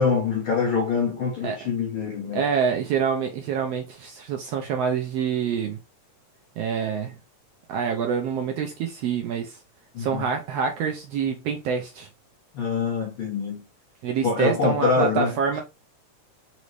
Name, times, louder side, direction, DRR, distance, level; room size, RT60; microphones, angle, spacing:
voice 1, 0.0-2.4 9.9-10.2 12.5-13.6 14.2-15.4, left 5 dB, 60° left, 1.4 m, -25 dB
voice 2, 2.3-5.8 6.6-7.2 7.7-9.6 10.0-12.1 14.0-15.6, right 6 dB, 75° right, 1.5 m, -26 dB
5.2 x 3.1 x 3.1 m
omnidirectional pair, 3.4 m